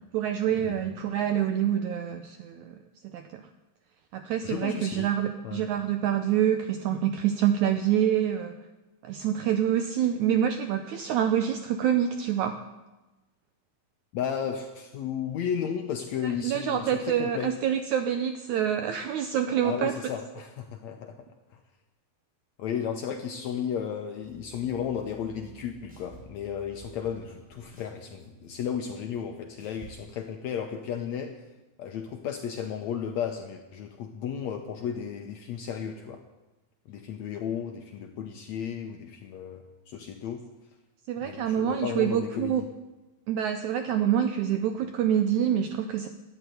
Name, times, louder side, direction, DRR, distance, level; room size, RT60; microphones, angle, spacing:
voice 1, 0.1-2.8 3.0-3.4 4.1-8.6 9.0-12.6 16.2-19.9 41.1-42.6 43.3-46.1, right 9 dB, 85° right, 8 dB, 1.7 m, -26 dB
voice 2, 4.4-5.1 5.4-5.7 14.1-17.5 19.6-21.6 22.6-31.3 31.8-36.2 36.9-40.4 41.2-42.7, left 8 dB, 75° left, 5 dB, 1.7 m, -34 dB
sound 1, 24.2-30.0, right 3 dB, ahead, 2.6 m, -52 dB
13.0 x 8.9 x 9.4 m, 1.1 s
omnidirectional pair, 4.2 m